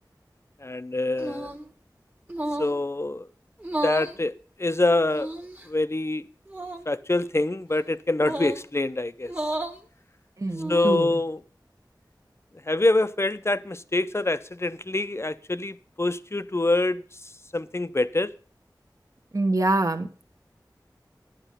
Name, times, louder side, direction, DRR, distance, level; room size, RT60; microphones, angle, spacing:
voice 1, 0.6-1.5 2.6-3.3 3.8-4.3 4.6-5.3 5.7-6.2 6.9-9.3 10.7-11.4 12.7-17.0 17.5-18.3, left 2 dB, 35° left, 0.6 m, -25 dB
sound 1, 1.2-1.7 2.3-2.8 3.6-4.2 5.1-5.7 6.5-6.8 8.2-8.6 9.2-9.8 10.5-11.0, right 1 dB, 25° right, 1.3 m, -32 dB
voice 2, 10.4-11.2 19.3-20.1, right 2 dB, 45° right, 1.1 m, -25 dB
11.0 x 9.1 x 5.5 m
wide cardioid pair, 50°, 8 cm